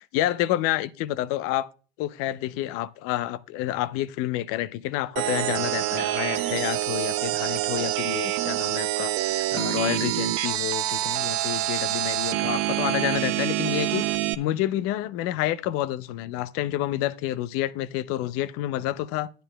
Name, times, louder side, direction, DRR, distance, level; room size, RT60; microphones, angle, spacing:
voice 1, 0.0-1.7 2.0-14.0 14.3-19.3, left 14 dB, 50° left, 0.6 m, -29 dB
sound 1, 5.2-14.3, right 15 dB, 45° right, 0.6 m, -26 dB
12.0 x 9.0 x 2.2 m
hypercardioid pair, 105°, 30 cm